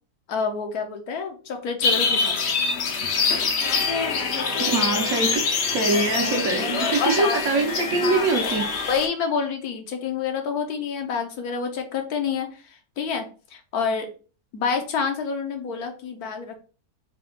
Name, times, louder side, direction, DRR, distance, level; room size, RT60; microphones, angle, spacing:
voice 1, 0.3-2.5 6.6-7.4 8.0-8.3 8.9-14.1 14.5-16.6, left 5 dB, 70° left, 5 dB, 1.2 m, -28 dB
sound 1, 1.8-9.1, left 5 dB, 55° left, 0.8 m, -25 dB
sound 2, 3.6-9.0, left 4 dB, 25° left, 0.7 m, -33 dB
voice 2, 4.7-5.4 5.7-8.6, right 3 dB, 60° right, 3 dB, 1.2 m, -23 dB
4.3 x 2.3 x 3.7 m, 0.37 s
omnidirectional pair, 1.7 m